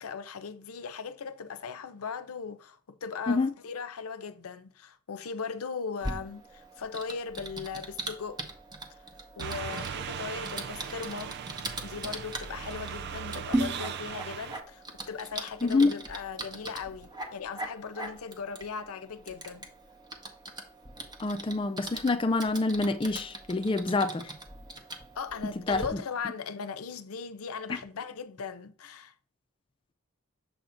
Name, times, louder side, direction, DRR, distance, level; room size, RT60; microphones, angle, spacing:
voice 1, 0.0-8.4 8.9-9.0 9.4-11.4 11.8-19.7 25.1-29.1, left 5 dB, 85° left, 0.6 m, -38 dB
Typing, 6.0-25.9, right 1 dB, 20° right, 0.7 m, -40 dB
sound 1, 9.4-14.6, right 7 dB, 50° right, 0.4 m, -38 dB
voice 2, 15.6-15.9 21.2-24.3 25.7-25.8, left 3 dB, 25° left, 0.3 m, -26 dB
7.0 x 2.6 x 5.6 m
head